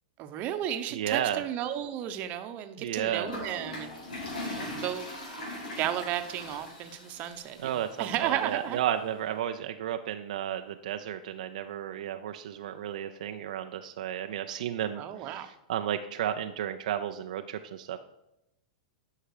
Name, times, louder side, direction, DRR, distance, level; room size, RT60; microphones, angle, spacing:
voice 1, 0.2-3.9 4.4-5.1 5.8-8.8 15.0-15.5, right 11 dB, 40° right, 8 dB, 1.0 m, -33 dB
voice 2, 0.9-1.4 2.8-3.3 7.6-18.0, right 10 dB, 70° right, 7 dB, 0.5 m, -33 dB
Toilet flush, 3.2-8.3, left 1 dB, 85° left, 3.2 m, -40 dB
11.0 x 5.8 x 4.9 m, 0.87 s
hypercardioid pair, 120°, 4 cm